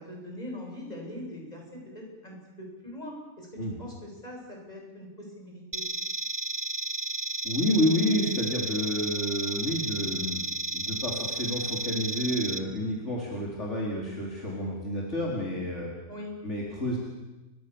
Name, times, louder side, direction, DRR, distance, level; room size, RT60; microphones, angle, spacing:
voice 1, 0.0-5.8 16.1-16.3, left 1 dB, 30° left, 0 dB, 8.1 m, -42 dB
sound 1, 5.7-12.6, right 2 dB, 15° right, 1.3 m, -33 dB
voice 2, 7.4-10.4 10.7-15.9 16.4-17.0, left 1 dB, 55° left, -3 dB, 4.9 m, -29 dB
29.5 x 25.0 x 7.2 m, 1.1 s
omnidirectional pair, 1.4 m